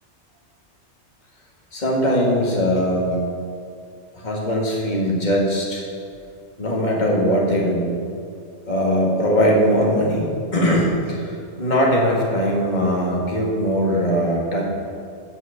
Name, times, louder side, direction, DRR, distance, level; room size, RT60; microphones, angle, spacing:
voice 1, 1.7-3.2 4.1-5.8 6.6-7.9 8.7-14.6, equal, 40° left, -3 dB, 2.1 m, -20 dB
11.0 x 6.4 x 8.2 m, 2.3 s
omnidirectional pair, 1.2 m